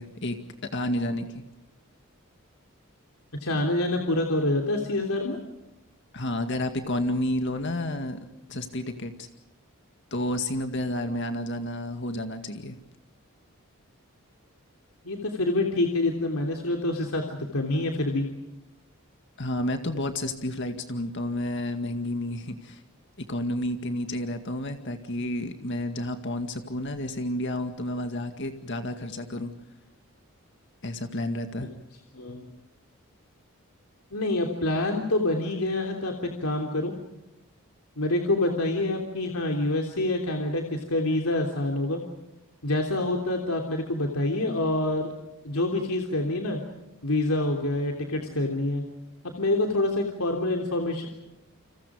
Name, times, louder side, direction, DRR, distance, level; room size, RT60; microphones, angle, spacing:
voice 1, 0.0-1.4 6.1-8.2 8.5-9.3 10.1-12.8 19.4-22.8 23.2-29.5 30.8-31.7, left 1 dB, 55° left, 6 dB, 2.1 m, -30 dB
voice 2, 3.4-5.4 15.0-17.2 17.5-18.3 31.6-31.7 32.1-32.5 34.1-36.9 38.0-42.0 42.6-45.1 45.4-46.6 47.0-48.8 49.4-51.1, left 2 dB, 85° left, 2 dB, 3.3 m, -26 dB
30.0 x 27.0 x 5.1 m, 0.96 s
head